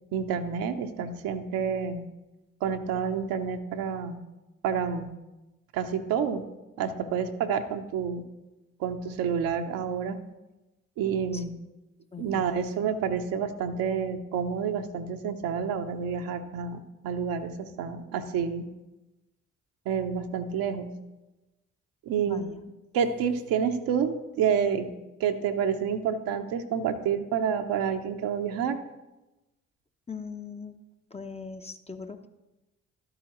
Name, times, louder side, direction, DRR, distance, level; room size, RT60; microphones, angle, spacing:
voice 1, 0.1-2.0 2.6-4.2 4.6-5.1 5.7-6.4 6.8-8.2 8.8-10.2 11.0-11.5 12.2-16.8 17.0-18.7 19.9-20.9 22.1-22.4 22.9-24.9 25.2-28.8, right 7 dB, 65° right, 6 dB, 0.9 m, -29 dB
voice 2, 12.1-12.6 22.3-22.7 30.1-30.8 31.1-32.3, left 5 dB, 15° left, 7 dB, 0.8 m, -40 dB
12.5 x 9.1 x 3.0 m, 1.0 s
hypercardioid pair, 45°, 38 cm